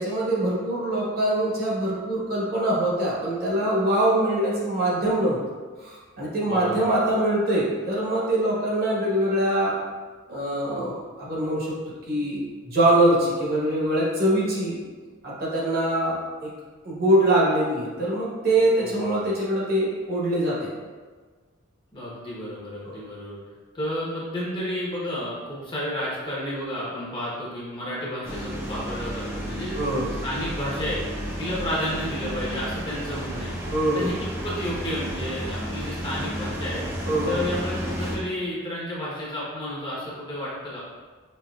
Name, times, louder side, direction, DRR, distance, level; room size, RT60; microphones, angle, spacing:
voice 1, 0.0-5.4 5.8-9.7 10.3-11.8 12.1-14.8 15.2-16.5 16.8-20.7 22.8-23.0 29.7-30.1 33.7-34.1 37.0-37.4, right 1 dB, 45° right, -5 dB, 1.1 m, -23 dB
voice 2, 6.4-6.9 18.8-19.3 21.9-23.4 23.7-29.8 30.2-31.0 31.4-33.5 33.9-36.8 37.2-40.8, equal, 20° left, -6 dB, 0.9 m, -31 dB
sound 1, 28.2-38.2, equal, 10° right, 0.5 m, -32 dB
5.3 x 2.8 x 2.3 m, 1.4 s
head